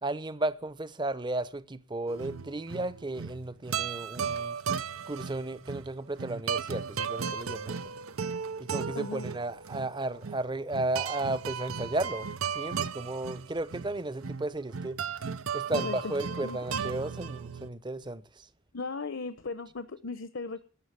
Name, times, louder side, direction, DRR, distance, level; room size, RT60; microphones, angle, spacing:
voice 1, 0.0-4.6 5.1-7.9 8.6-15.0 15.5-18.5, right 2 dB, 20° right, 0.7 m, -34 dB
sound 1, 2.1-17.7, right 6 dB, 85° right, 0.8 m, -36 dB
voice 2, 9.0-9.3 15.7-16.0 16.4-16.8 18.7-20.6, left 3 dB, 60° left, 0.9 m, -37 dB
12.5 x 8.0 x 9.6 m
head